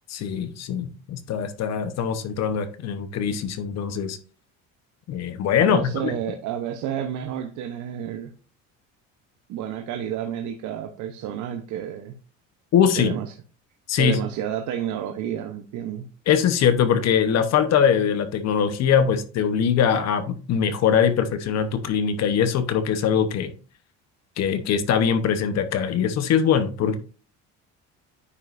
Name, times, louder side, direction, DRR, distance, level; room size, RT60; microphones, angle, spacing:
voice 1, 0.1-4.2 5.1-6.1 12.7-13.2 13.9-14.2 16.3-23.5 24.4-27.0, left 8 dB, 55° left, 1.0 m, -22 dB
voice 2, 5.6-8.3 9.5-12.1 13.0-13.3 13.9-16.1, right 10 dB, 70° right, 0.9 m, -30 dB
9.6 x 5.4 x 2.6 m
cardioid pair, 125°, 32 cm